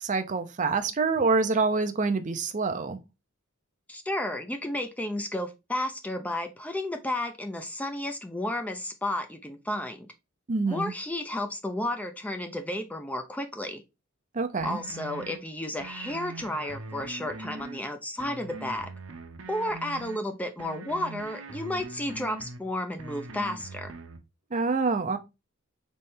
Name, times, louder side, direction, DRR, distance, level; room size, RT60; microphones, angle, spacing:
voice 1, 0.0-3.0 10.5-10.9 14.3-14.8 24.5-25.2, right 4 dB, 40° right, 0.6 m, -26 dB
voice 2, 3.9-10.1 10.7-13.8 14.6-18.9 19.5-23.9, left 1 dB, 5° left, 0.5 m, -32 dB
sound 1, 14.6-15.4 15.8-17.8 18.2-20.2 20.6-22.6 23.0-24.2, right 3 dB, 75° right, 0.8 m, -42 dB
4.2 x 3.2 x 3.5 m
head